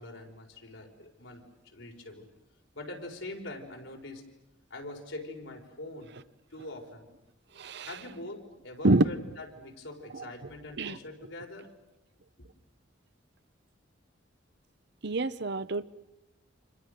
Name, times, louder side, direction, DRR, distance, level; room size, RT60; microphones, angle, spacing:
voice 1, 0.0-2.3 2.7-4.3 4.7-6.1 6.5-7.1 7.8-11.7, left 2 dB, 85° left, 4.7 m, -43 dB
voice 2, 7.6-7.9 8.8-9.1 10.1-10.3 10.8-11.0 15.0-15.8, right 2 dB, 60° right, 0.9 m, -26 dB
30.0 x 26.5 x 6.6 m
head